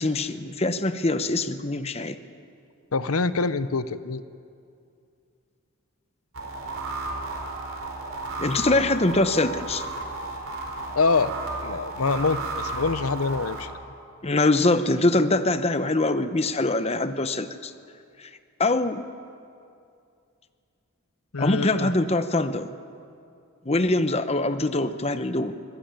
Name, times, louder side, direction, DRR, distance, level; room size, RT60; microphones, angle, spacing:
voice 1, 0.0-2.2 8.4-9.8 14.2-17.7 18.2-18.3 18.6-19.1 21.4-22.7 23.6-25.5, left 2 dB, 30° left, 11 dB, 0.9 m, -23 dB
voice 2, 2.9-4.2 11.0-11.3 11.6-13.7 21.3-21.9, left 4 dB, 90° left, 14 dB, 0.9 m, -25 dB
sound 1, 6.3-13.6, right 2 dB, 70° right, 4.5 m, -33 dB
25.0 x 17.0 x 9.0 m, 2.4 s
head